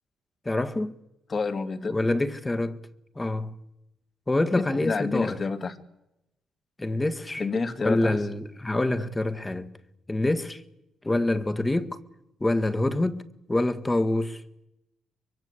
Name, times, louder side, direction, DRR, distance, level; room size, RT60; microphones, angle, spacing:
voice 1, 0.4-0.9 1.9-2.8 3.1-3.5 4.3-5.4 6.8-7.5 7.8-9.7 10.1-10.6 11.0-12.0 12.4-13.2 13.5-14.4, left 2 dB, 15° left, 1.7 m, -26 dB
voice 2, 1.3-2.0 4.8-5.7 7.4-8.2, left 4 dB, 40° left, 2.2 m, -28 dB
23.5 x 23.5 x 8.3 m
cardioid pair, 90°, 0 cm